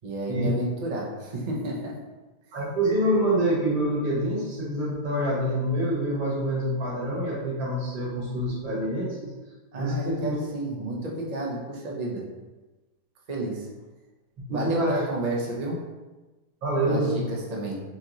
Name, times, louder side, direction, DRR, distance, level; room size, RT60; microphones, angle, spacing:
voice 1, 0.0-2.0 9.7-12.3 13.3-13.7 14.5-15.8 16.8-17.8, right 1 dB, 45° right, -3 dB, 0.5 m, -31 dB
voice 2, 2.5-9.3 9.8-10.4 14.4-15.0 16.6-17.2, right 1 dB, 85° right, -6 dB, 1.9 m, -26 dB
4.3 x 3.8 x 2.9 m, 1.2 s
omnidirectional pair, 1.7 m